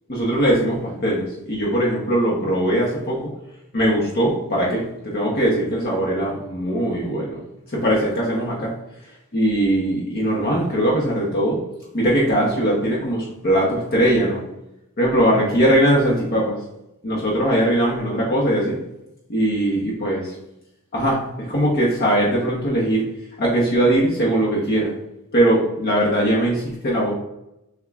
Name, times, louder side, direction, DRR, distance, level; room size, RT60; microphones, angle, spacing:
voice 1, 0.1-3.3 3.7-7.4 7.7-8.7 9.3-11.6 11.9-14.4 15.0-16.6 17.0-18.8 19.3-20.4 20.9-23.0 23.4-24.9 25.3-27.1, right 1 dB, 45° left, -4 dB, 0.8 m, -20 dB
6.9 x 2.3 x 2.3 m, 0.88 s
head